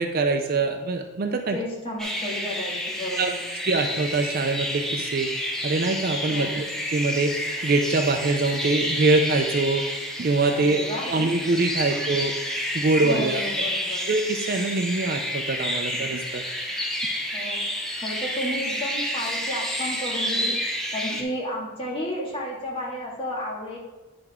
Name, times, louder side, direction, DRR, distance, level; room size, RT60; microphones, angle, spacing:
voice 1, 0.0-1.6 3.2-3.3 3.6-7.3 7.6-9.8 10.2-12.3 12.7-13.6 14.1-16.4 21.1-21.2, right 3 dB, 40° right, 5 dB, 0.5 m, -24 dB
voice 2, 1.5-3.5 6.3-6.7 10.5-11.3 11.9-12.1 13.0-14.1 17.3-17.6 18.0-20.6 20.9-23.8, left 1 dB, 25° left, -4 dB, 2.0 m, -32 dB
sound 1, 2.0-21.2, equal, ahead, 0.7 m, -30 dB
9.1 x 5.2 x 3.6 m, 1.1 s
head